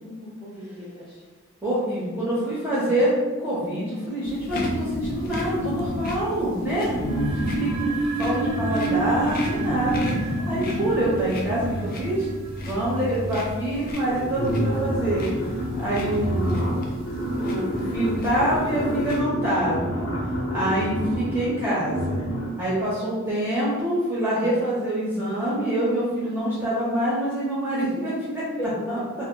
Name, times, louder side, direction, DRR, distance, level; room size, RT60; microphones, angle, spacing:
voice 1, 0.0-1.2 22.9-23.3 28.6-29.0, equal, 25° left, -7 dB, 0.7 m, -36 dB
voice 2, 1.6-12.3 12.6-15.3 15.8-16.6 17.3-20.1 20.5-22.2 22.6-28.5 28.9-29.2, right 1 dB, 10° right, -9 dB, 0.6 m, -26 dB
sound 1, 4.2-19.2, left 2 dB, 45° left, 0.3 m, -38 dB
sound 2, 4.5-6.4 6.8-12.5 13.4-13.5 13.8-22.7, equal, 85° left, 0.9 m, -29 dB
sound 3, 7.0-13.9, right 3 dB, 70° right, 0.4 m, -30 dB
2.1 x 2.0 x 3.6 m, 1.3 s
head